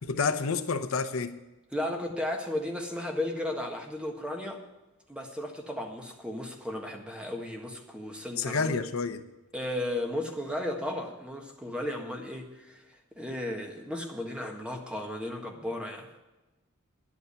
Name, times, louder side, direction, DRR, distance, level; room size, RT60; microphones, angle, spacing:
voice 1, 0.0-1.3 8.4-9.2, left 4 dB, 70° left, 9 dB, 0.8 m, -29 dB
voice 2, 1.7-4.6 5.1-8.7 9.5-16.1, left 1 dB, 5° right, 2 dB, 1.5 m, -35 dB
10.5 x 8.5 x 8.2 m, 1.0 s
head